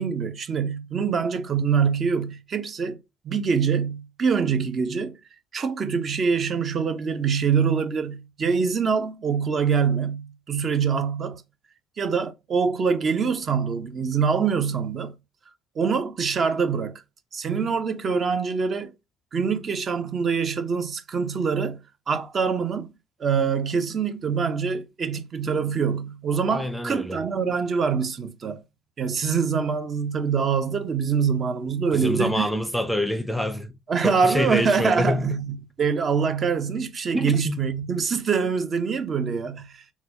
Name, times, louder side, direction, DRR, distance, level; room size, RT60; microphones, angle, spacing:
voice 1, 0.0-3.0 3.2-5.2 5.5-11.4 12.0-15.1 15.8-17.0 17.3-18.9 19.3-21.8 22.1-22.9 23.2-28.6 29.0-32.5 33.9-39.8, right 6 dB, 40° right, 0.6 m, -24 dB
voice 2, 26.5-27.2 31.9-33.7 34.0-35.3 37.1-37.6, left 1 dB, 5° left, 0.6 m, -26 dB
3.9 x 2.3 x 2.8 m
supercardioid pair, 80°, 0 cm